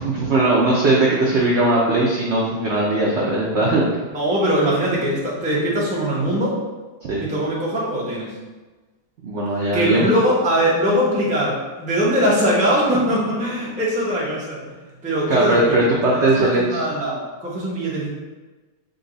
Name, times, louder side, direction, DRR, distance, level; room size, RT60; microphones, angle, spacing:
voice 1, 0.0-3.8 7.0-7.2 9.2-10.1 15.3-16.8, right 2 dB, 70° right, -4 dB, 0.6 m, -19 dB
voice 2, 4.1-6.6 7.2-8.3 9.7-14.7 15.0-15.8 16.1-18.1, equal, 10° right, -6 dB, 0.4 m, -21 dB
5.2 x 2.3 x 3.8 m, 1.2 s
omnidirectional pair, 1.9 m